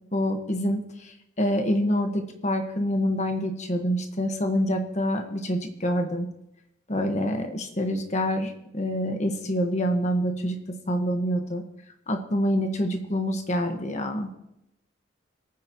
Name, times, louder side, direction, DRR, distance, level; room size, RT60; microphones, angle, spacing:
voice 1, 0.1-6.3 6.9-11.6 12.1-14.3, equal, 40° left, 5 dB, 1.4 m, -26 dB
27.0 x 9.3 x 3.1 m, 0.86 s
head